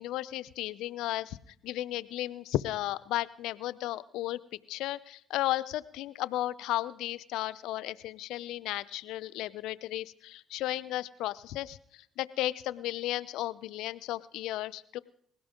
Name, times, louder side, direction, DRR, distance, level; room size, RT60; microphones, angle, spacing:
voice 1, 0.0-1.4 1.6-4.4 4.7-15.0, left 15 dB, 80° left, 18 dB, 0.6 m, -34 dB
20.5 x 17.0 x 3.7 m, 0.66 s
supercardioid pair, 65°, 0 cm